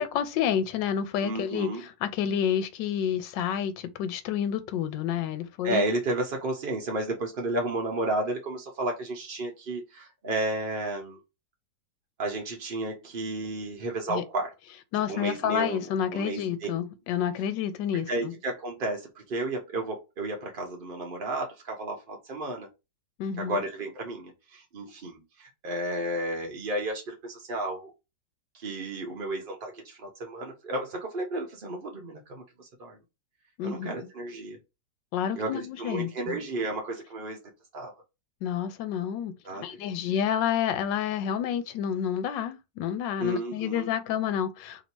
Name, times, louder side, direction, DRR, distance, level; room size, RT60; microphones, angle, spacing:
voice 1, 0.0-5.8 14.1-14.2 14.9-18.3 23.2-23.6 33.6-33.9 35.1-36.4 38.4-39.3 39.6-44.8, left 9 dB, 80° left, 1.3 m, -29 dB
voice 2, 1.2-1.8 5.6-11.2 12.2-14.5 15.1-16.7 18.1-22.7 23.4-27.9 28.5-33.0 33.6-34.6 35.3-37.4 37.7-37.9 39.4-39.8 43.2-43.9, right 2 dB, 50° right, 0.6 m, -32 dB
3.0 x 2.8 x 4.4 m
omnidirectional pair, 2.0 m